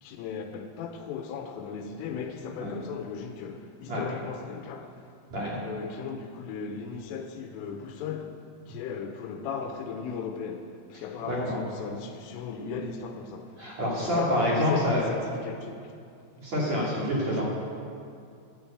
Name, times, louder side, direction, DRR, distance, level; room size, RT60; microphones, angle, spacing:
voice 1, 0.0-5.0 5.6-8.4 8.7-13.7 14.0-15.9 17.3-17.4, left 6 dB, 85° left, 3.4 m, -36 dB
voice 2, 11.3-11.6 13.6-15.0 16.4-17.4, equal, 40° right, 3.3 m, -27 dB
12.5 x 10.5 x 8.8 m
omnidirectional pair, 5.9 m